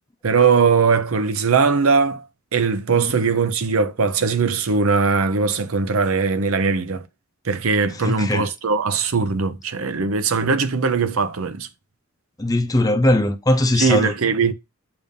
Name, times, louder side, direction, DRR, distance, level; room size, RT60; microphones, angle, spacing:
voice 1, 0.2-2.2 2.5-7.1 7.4-11.7 13.7-14.5, right 5 dB, 70° right, 0.7 m, -20 dB
voice 2, 8.0-8.4 12.4-14.1, left 1 dB, 15° left, 0.6 m, -19 dB
6.8 x 2.7 x 5.2 m
head